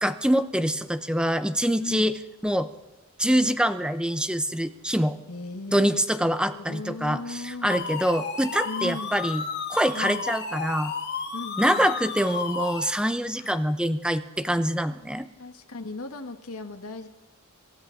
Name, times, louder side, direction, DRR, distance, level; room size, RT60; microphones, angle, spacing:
voice 1, 0.0-2.1 2.4-2.7 3.2-5.2 5.7-9.4 9.7-10.9 11.6-15.3, equal, 5° right, 11 dB, 0.8 m, -25 dB
voice 2, 5.3-7.9 8.6-9.1 9.9-10.2 11.3-11.9 13.4-13.6 15.4-17.1, left 3 dB, 90° left, 5 dB, 1.4 m, -37 dB
sound 1, 7.7-12.9, left 5 dB, 50° left, 2.4 m, -32 dB
27.0 x 13.5 x 3.8 m, 1.1 s
head